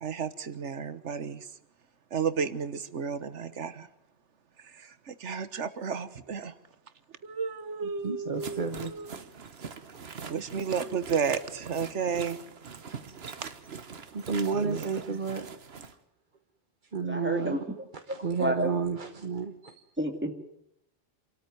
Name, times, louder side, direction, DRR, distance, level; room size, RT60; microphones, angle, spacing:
voice 1, 0.0-1.5 2.1-3.9 4.6-6.5 7.2-9.2 10.3-12.4 14.5-15.2, right 6 dB, 85° right, 13 dB, 1.5 m, -33 dB
voice 2, 8.0-8.9 9.9-10.0 14.1-15.5 16.9-17.7 17.9-19.8, right 5 dB, 45° right, 7 dB, 1.3 m, -31 dB
sound 1, 8.4-15.9, right 5 dB, 65° right, 1.4 m, -43 dB
voice 3, 17.1-17.6 18.4-18.7 20.0-20.3, right 1 dB, 10° right, 5 dB, 2.2 m, -29 dB
27.5 x 13.5 x 9.3 m, 0.77 s
omnidirectional pair, 1.2 m